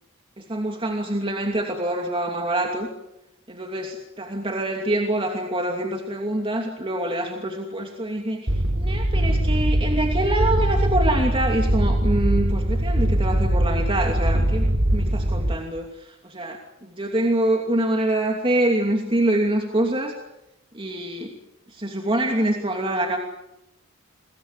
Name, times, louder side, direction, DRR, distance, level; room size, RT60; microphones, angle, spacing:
voice 1, 0.4-2.9 3.5-14.7 14.9-20.1 20.7-21.3 21.7-23.2, right 1 dB, 25° right, 2 dB, 2.8 m, -25 dB
sound 1, 8.5-15.5, right 1 dB, 55° right, 3.6 m, -21 dB
28.0 x 22.0 x 8.3 m, 0.88 s
head